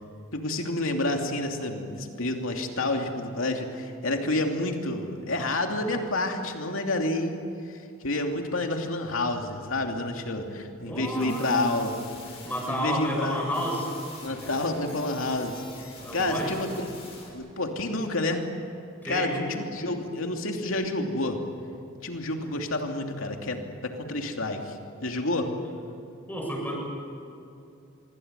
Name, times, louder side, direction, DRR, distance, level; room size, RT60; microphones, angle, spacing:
voice 1, 0.3-7.4 7.7-12.0 12.7-13.4 14.2-15.6 16.1-16.9 17.3-18.5 19.0-21.4 22.0-25.5, left 2 dB, 70° left, 3 dB, 2.9 m, -29 dB
voice 2, 10.9-11.5 12.4-13.9 14.4-14.5 16.0-16.5 19.0-19.5 25.6-25.7 26.3-26.7, equal, 10° left, -1 dB, 7.5 m, -31 dB
sound 1, 11.0-17.3, left 3 dB, 30° left, 7.3 m, -46 dB
25.5 x 24.0 x 8.2 m, 2.6 s
head